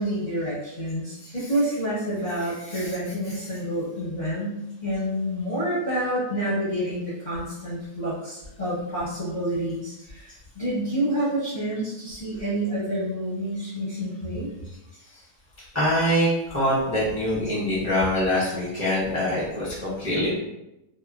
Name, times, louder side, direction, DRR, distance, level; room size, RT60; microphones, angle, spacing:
voice 1, 0.0-14.5, right 1 dB, 45° left, -9 dB, 0.6 m, -28 dB
voice 2, 15.7-20.3, equal, 20° right, -8 dB, 0.4 m, -24 dB
3.0 x 2.0 x 2.3 m, 0.93 s
omnidirectional pair, 1.6 m